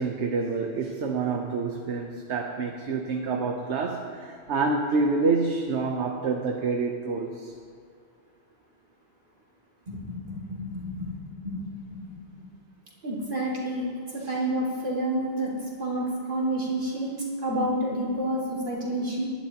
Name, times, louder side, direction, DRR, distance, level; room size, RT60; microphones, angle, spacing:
voice 1, 0.0-7.5 14.2-14.4, right 4 dB, 85° right, 3 dB, 1.1 m, -27 dB
voice 2, 10.3-11.1 11.4-12.5 13.0-13.8 14.2-15.5 15.8-17.1 17.4-19.3, right 1 dB, 50° right, -6 dB, 2.7 m, -29 dB
20.5 x 11.5 x 2.9 m, 2.2 s
omnidirectional pair, 1.1 m